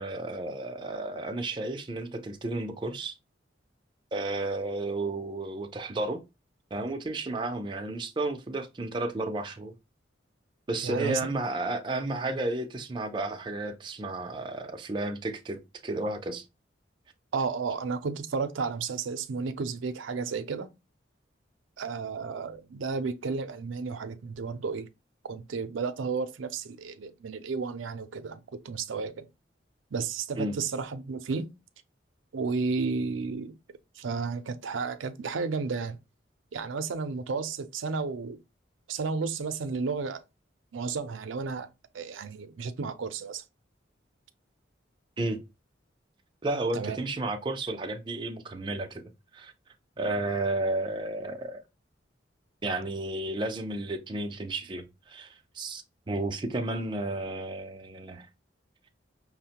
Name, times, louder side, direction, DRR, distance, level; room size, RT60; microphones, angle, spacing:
voice 1, 0.0-3.1 4.1-6.2 6.7-9.7 10.7-16.4 30.4-30.5 45.2-45.4 46.4-49.5 50.0-51.6 52.6-55.3 55.5-58.3, right 2 dB, 25° right, 0.4 m, -32 dB
voice 2, 10.8-11.2 17.3-20.7 21.8-24.9 25.2-29.3 29.9-31.5 32.3-33.6 34.0-36.0 36.5-38.4 38.9-40.2 40.7-41.7 41.9-43.4 46.7-47.0, right 4 dB, 85° right, 0.5 m, -32 dB
5.7 x 2.1 x 2.8 m
head